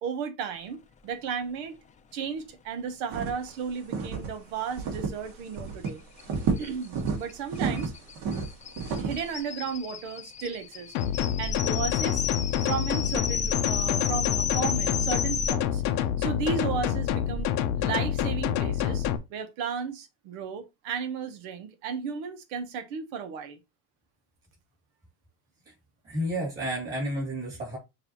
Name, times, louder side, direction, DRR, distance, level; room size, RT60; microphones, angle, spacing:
voice 1, 0.0-1.8 2.1-6.0 6.6-7.9 9.0-10.9 11.4-12.3 12.7-15.8 16.2-23.6, right 6 dB, 90° right, 1.1 m, -34 dB
sound 1, 3.1-3.5 3.9-4.3 4.8-5.3 5.5-5.9 6.2-7.2 7.5-9.3, right 5 dB, 60° right, 1.6 m, -30 dB
sound 2, 5.9-6.0 6.2-6.3 6.6-15.5, left 7 dB, 25° left, 0.5 m, -33 dB
sound 3, 10.9-19.2, left 9 dB, 80° left, 0.7 m, -27 dB
voice 2, 26.0-27.8, equal, 35° right, 2.9 m, -31 dB
6.6 x 2.7 x 2.9 m
cardioid pair, 130°, 32 cm